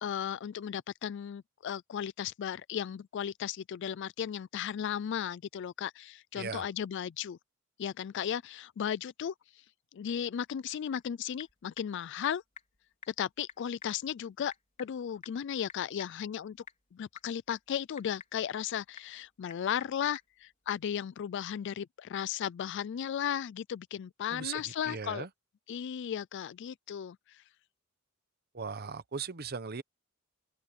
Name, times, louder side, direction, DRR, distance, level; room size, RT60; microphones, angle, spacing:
voice 1, 0.0-7.4 7.8-9.6 9.9-12.4 13.1-14.5 14.8-16.6 16.9-25.3 25.7-27.4, left 9 dB, 60° left, 0.3 m, -35 dB
Typing / Telephone, 10.4-20.9, left 5 dB, 35° left, 3.8 m, -55 dB
voice 2, 24.3-25.3 28.5-29.8, right 5 dB, 50° right, 0.9 m, -38 dB
open air
head